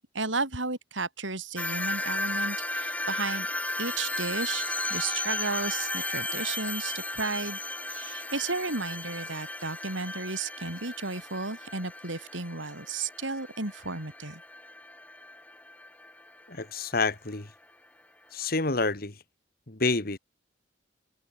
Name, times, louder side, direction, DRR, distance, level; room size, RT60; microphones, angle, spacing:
voice 1, 0.1-3.5 3.8-7.6 7.9-14.4, right 3 dB, 85° right, 5.2 m, -33 dB
sound 1, 1.6-16.5, left 2 dB, 10° left, 1.1 m, -35 dB
voice 2, 16.5-17.5 18.3-19.1 19.7-20.2, left 3 dB, 50° left, 2.0 m, -28 dB
open air
head